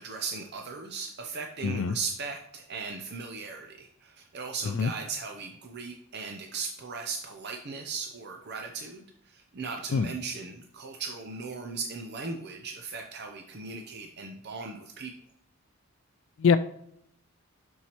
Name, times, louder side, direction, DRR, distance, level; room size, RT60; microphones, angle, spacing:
voice 1, 0.0-15.1, right 4 dB, 50° right, 3 dB, 0.6 m, -37 dB
voice 2, 1.6-2.0 4.6-4.9 9.9-10.1 16.4-16.6, left 6 dB, 60° left, 12 dB, 0.3 m, -24 dB
7.1 x 6.4 x 3.0 m, 0.71 s
head